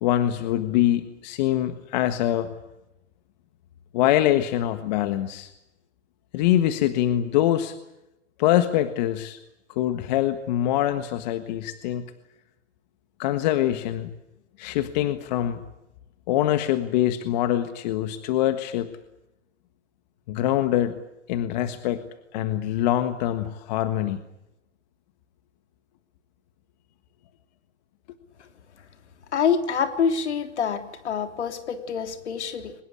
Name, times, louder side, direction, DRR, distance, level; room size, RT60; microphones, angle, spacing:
voice 1, 0.0-2.5 3.9-5.5 6.3-7.7 8.4-9.4 9.7-12.1 13.2-14.1 14.6-15.6 16.3-18.9 20.3-21.0 21.3-22.0 22.3-24.2, left 12 dB, 35° left, 10 dB, 1.5 m, -24 dB
voice 2, 29.3-32.7, left 6 dB, 65° left, 7 dB, 3.5 m, -26 dB
23.5 x 20.5 x 9.7 m, 0.91 s
hypercardioid pair, 145°, 36 cm